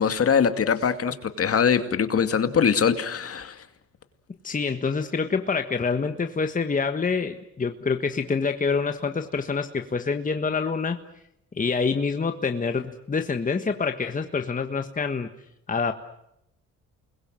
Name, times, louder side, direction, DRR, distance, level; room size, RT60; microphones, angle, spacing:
voice 1, 0.0-3.5, left 7 dB, 50° left, 9 dB, 2.3 m, -22 dB
voice 2, 4.4-11.0 11.6-15.3 15.7-15.9, left 5 dB, 25° left, 6 dB, 1.5 m, -26 dB
29.0 x 21.5 x 7.7 m, 0.79 s
cardioid pair, 90°, 30 cm